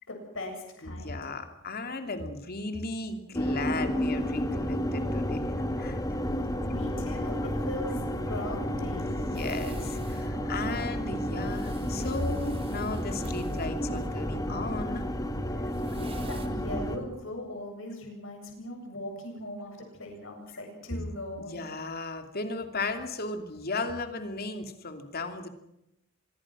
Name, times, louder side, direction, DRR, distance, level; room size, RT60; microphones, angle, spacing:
voice 1, 0.1-1.2 6.7-9.2 16.3-21.6, left 1 dB, 70° left, 3 dB, 7.7 m, -39 dB
voice 2, 0.8-5.4 5.8-6.0 8.9-15.1 20.9-21.1 21.4-25.5, left 2 dB, 50° left, 7 dB, 2.9 m, -35 dB
sound 1, 3.3-17.0, equal, 20° left, 2.1 m, -31 dB
sound 2, 9.3-16.5, right 4 dB, 30° right, 2.9 m, -51 dB
25.5 x 22.5 x 6.3 m, 0.82 s
head